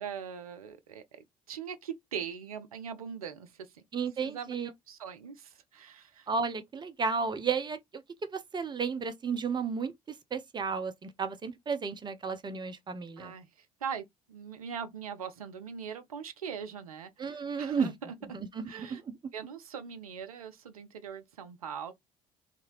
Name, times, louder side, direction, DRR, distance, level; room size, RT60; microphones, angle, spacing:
voice 1, 0.0-3.7 4.2-6.3 13.2-18.1 18.7-19.0 19.3-21.9, right 7 dB, 80° right, 0.5 m, -41 dB
voice 2, 3.9-4.7 6.3-7.8 8.2-9.9 10.3-13.3 17.2-17.9 18.3-19.2, right 5 dB, 25° right, 0.6 m, -33 dB
2.7 x 2.4 x 2.9 m
figure-of-eight pair, 55°, 18 cm